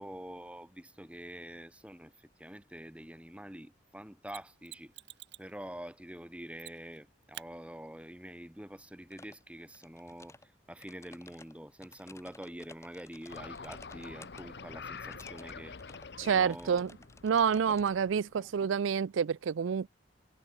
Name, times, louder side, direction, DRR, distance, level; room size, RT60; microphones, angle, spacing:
voice 1, 0.0-4.9 5.4-15.8 16.2-16.8 17.7-17.8 18.4-18.5, equal, 5° right, 1.9 m, -46 dB
Mechanisms, 4.3-5.5 6.6-7.0 7.3-7.5 10.2-10.3, right 13 dB, 65° right, 2.1 m, -48 dB
sound 1, 9.1-9.4 9.7-10.5 10.8-14.4 15.0-15.5 15.8-16.1 16.5-17.9, left 3 dB, 15° left, 1.9 m, -55 dB
sound 2, 13.3-18.7, left 5 dB, 60° left, 0.8 m, -47 dB
voice 2, 16.2-16.9 17.2-19.9, right 7 dB, 85° right, 0.4 m, -28 dB
head